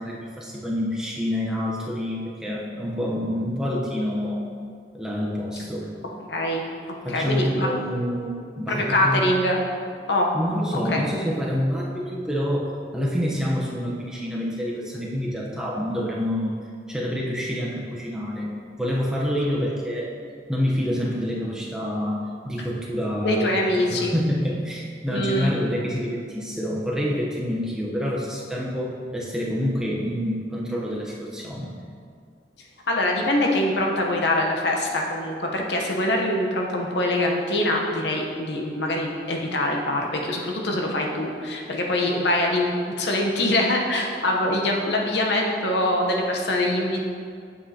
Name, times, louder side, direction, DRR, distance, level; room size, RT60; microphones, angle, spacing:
voice 1, 0.0-4.4 4.9-5.9 7.0-9.3 10.3-16.5 16.9-20.1 20.5-31.8, equal, 5° right, -4 dB, 0.9 m, -27 dB
voice 2, 6.3-6.6 7.1-7.7 8.7-9.6 10.1-10.3 10.9-11.0 22.6-22.7 23.2-24.1 25.1-25.5 32.9-47.0, left 1 dB, 75° left, 0 dB, 1.0 m, -24 dB
8.7 x 7.4 x 2.9 m, 2.2 s
head